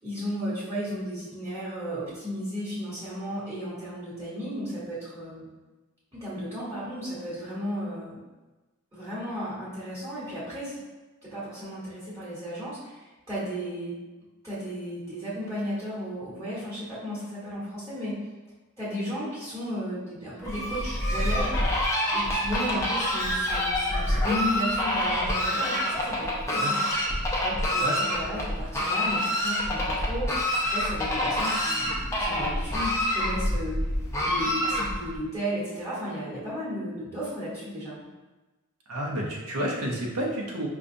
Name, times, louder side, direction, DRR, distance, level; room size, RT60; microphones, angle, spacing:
voice 1, 0.0-5.5 6.1-8.2 8.9-10.8 11.2-14.0 14.4-18.2 18.8-21.6 22.1-26.8 27.4-33.9 34.2-38.0, equal, 15° right, -9 dB, 1.2 m, -34 dB
Fowl, 20.4-35.2, left 1 dB, 15° left, 0.5 m, -27 dB
voice 2, 38.9-40.7, equal, 80° right, -1 dB, 0.8 m, -30 dB
5.1 x 2.3 x 2.6 m, 1.2 s
head